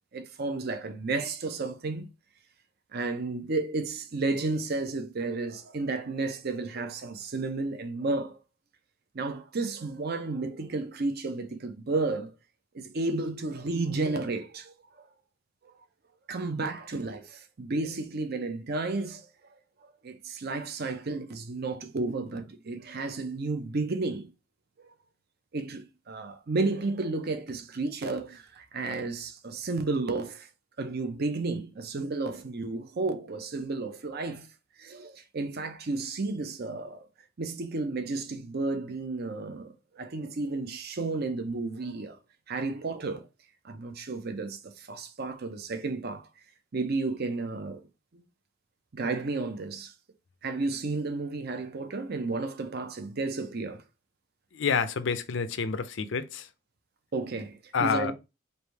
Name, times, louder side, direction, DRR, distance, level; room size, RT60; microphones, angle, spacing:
voice 1, 0.1-2.1 2.9-8.4 9.1-12.3 12.7-15.1 16.3-19.3 20.0-24.3 24.8-24.9 25.5-30.5 30.8-34.5 34.8-37.1 37.4-42.2 42.5-43.2 43.6-46.3 46.7-47.8 48.1-48.2 48.9-49.9 50.4-53.8 57.1-58.1, right 3 dB, 45° right, 0.6 m, -32 dB
voice 2, 54.5-56.5 57.7-58.1, left 5 dB, 55° left, 0.4 m, -28 dB
3.3 x 2.6 x 4.5 m
head